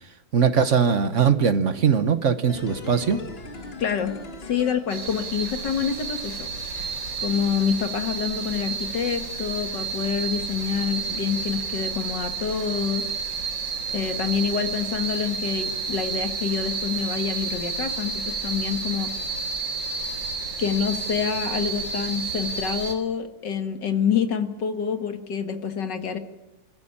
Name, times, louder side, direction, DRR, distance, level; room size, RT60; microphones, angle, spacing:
voice 1, 0.3-3.2, right 6 dB, 45° right, 11 dB, 1.2 m, -20 dB
sound 1, 2.5-5.6 5.9-6.0, left 3 dB, 30° left, 2.0 m, -39 dB
voice 2, 3.8-4.2 4.4-6.9 7.2-13.1 13.9-19.1 20.6-26.2, left 7 dB, 70° left, 8 dB, 2.3 m, -27 dB
sound 2, 4.9-23.0, right 5 dB, 80° right, 4.8 m, -31 dB
25.5 x 15.0 x 8.7 m, 0.97 s
omnidirectional pair, 2.0 m